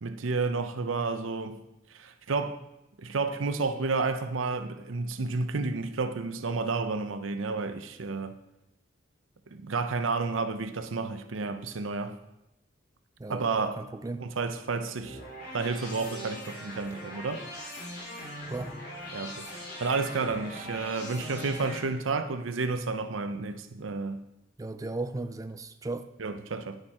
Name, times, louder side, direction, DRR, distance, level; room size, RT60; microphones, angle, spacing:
voice 1, 0.0-1.6 1.9-2.6 3.0-8.3 9.5-12.2 13.3-13.8 14.2-15.2 15.5-17.4 19.1-24.3 26.2-26.8, right 4 dB, 85° right, 0.7 m, -31 dB
voice 2, 13.2-14.3 18.5-18.8 24.6-26.1, right 2 dB, 20° right, 0.4 m, -36 dB
sound 1, 15.0-21.8, equal, 55° left, 2.8 m, -41 dB
10.5 x 6.8 x 4.3 m
head